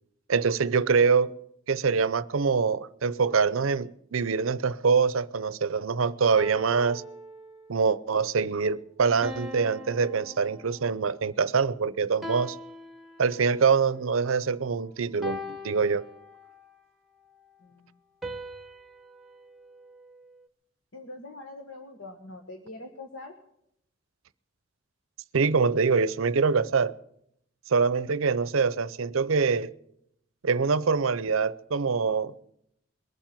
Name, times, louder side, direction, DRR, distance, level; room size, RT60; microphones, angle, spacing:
voice 1, 0.3-1.3 1.7-7.0 7.7-12.6 13.2-16.1 25.3-26.9 27.7-29.7 30.4-32.3, right 5 dB, 85° right, 0.6 m, -24 dB
sound 1, 6.4-7.8 9.2-11.1 12.2-13.7 15.2-16.7 18.2-20.5, left 1 dB, ahead, 1.0 m, -41 dB
voice 2, 17.6-18.0 20.9-23.3, left 2 dB, 75° left, 1.5 m, -43 dB
21.5 x 7.4 x 9.1 m
head